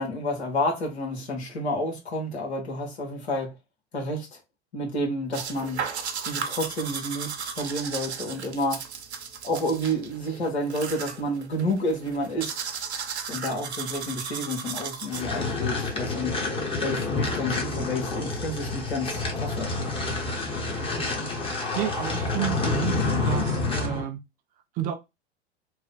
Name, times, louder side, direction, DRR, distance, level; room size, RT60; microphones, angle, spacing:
voice 1, 0.0-3.5 3.9-4.4 4.7-5.8 6.2-8.8 9.4-12.6 13.3-16.3 16.8-19.7, left 1 dB, 75° left, 1.5 m, -30 dB
sound 1, 5.3-15.6, right 6 dB, 75° right, 0.7 m, -35 dB
sound 2, 15.1-24.1, left 3 dB, 15° left, 0.9 m, -28 dB
voice 2, 21.8-24.2 24.7-24.9, right 11 dB, 25° right, 0.3 m, -31 dB
3.2 x 2.1 x 3.9 m
figure-of-eight pair, 90°, 33 cm